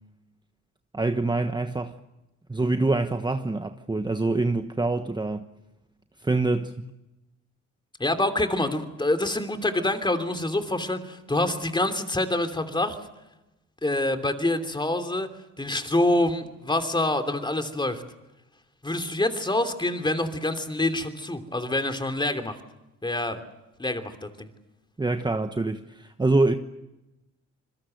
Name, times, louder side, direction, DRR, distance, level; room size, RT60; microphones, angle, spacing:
voice 1, 0.9-2.0 2.5-5.4 6.2-6.7 25.0-26.5, right 2 dB, 15° right, 1.2 m, -25 dB
voice 2, 8.0-13.0 13.8-15.3 15.6-18.0 18.8-22.5 23.0-23.4 23.8-24.5, left 1 dB, 15° left, 3.1 m, -26 dB
27.0 x 21.5 x 7.9 m
cardioid pair, 90°, 30 cm